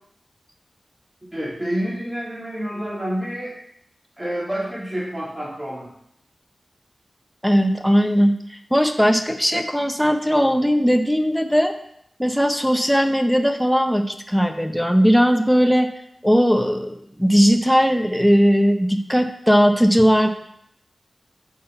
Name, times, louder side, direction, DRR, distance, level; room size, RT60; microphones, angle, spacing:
voice 1, 1.3-3.5 4.2-5.9, equal, 20° right, -4 dB, 2.2 m, -28 dB
voice 2, 7.4-11.7 12.2-15.9 16.2-20.3, equal, ahead, 5 dB, 0.6 m, -18 dB
5.8 x 5.5 x 4.4 m, 0.73 s
wide cardioid pair, 85°, 0 cm